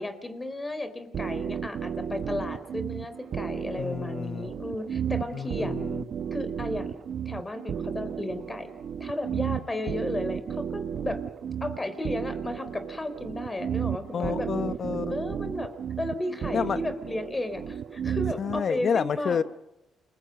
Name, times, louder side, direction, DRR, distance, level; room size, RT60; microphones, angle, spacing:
voice 1, 0.0-5.7 6.3-7.0 7.3-8.7 9.0-11.2 11.6-14.5 15.1-15.7 16.0-19.4, left 1 dB, 20° left, 3.8 m, -34 dB
sound 1, 1.1-18.6, right 8 dB, 60° right, 0.9 m, -33 dB
voice 2, 3.8-4.5 5.3-6.1 14.1-15.2 16.5-16.8 18.4-19.4, left 6 dB, 50° left, 1.1 m, -29 dB
30.0 x 22.0 x 5.3 m
cardioid pair, 90°, 0 cm